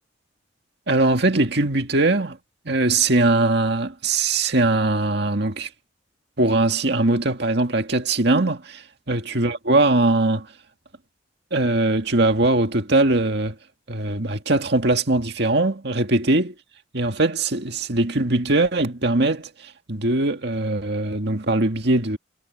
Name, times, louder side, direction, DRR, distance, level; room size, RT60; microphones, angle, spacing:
voice 1, 0.9-2.4 2.7-5.7 6.4-10.5 11.5-13.6 13.9-16.5 16.9-22.2, right 2 dB, 60° right, 2.1 m, -21 dB
head